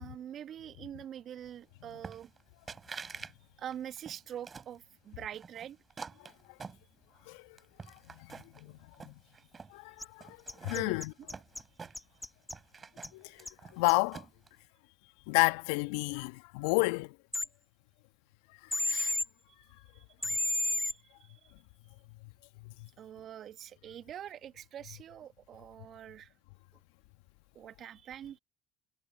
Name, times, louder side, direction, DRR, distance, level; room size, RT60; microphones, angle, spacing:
voice 1, 0.0-2.3 3.6-5.8 8.6-9.1 10.7-11.0 19.9-20.0 20.9-21.4 23.0-26.3 27.5-28.4, right 10 dB, 50° right, 1.6 m, -45 dB
sound 1, 2.0-2.4 2.7-3.3 3.7-4.8 5.3-7.2 7.6-8.6 8.9-9.7 10.2-12.2 12.5-14.5, right 5 dB, 35° right, 7.8 m, -47 dB
voice 2, 7.3-7.6 8.1-8.7 9.0-9.2 9.7-10.4 10.6-11.1 13.1-13.5 13.7-14.2 15.3-17.1 18.6-19.1 22.6-22.9, left 26 dB, 75° left, 1.5 m, -31 dB
sound 2, 10.0-10.1 10.5-11.6 11.9-12.5 13.0-13.1 13.4-13.5 13.9-14.0 17.3-17.5 18.7-19.2 20.2-20.9, left 2 dB, 10° left, 1.6 m, -31 dB
hypercardioid pair, 60°, 0 cm